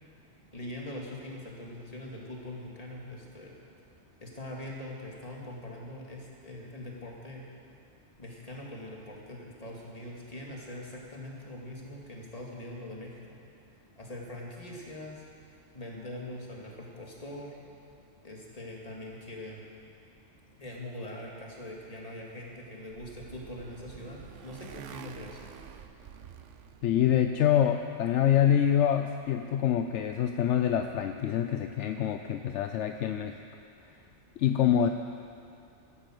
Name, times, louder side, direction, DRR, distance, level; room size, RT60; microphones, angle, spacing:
voice 1, 0.5-3.5 4.2-7.4 8.2-13.4 14.0-17.5 18.2-19.6 20.6-25.5, left 1 dB, 30° left, -2 dB, 2.2 m, -42 dB
Motorcycle, 22.4-27.4, right 8 dB, 85° right, 1.0 m, -48 dB
voice 2, 26.8-33.4 34.4-34.9, left 9 dB, 75° left, 6 dB, 0.9 m, -26 dB
13.0 x 10.0 x 7.7 m, 2.5 s
omnidirectional pair, 1.2 m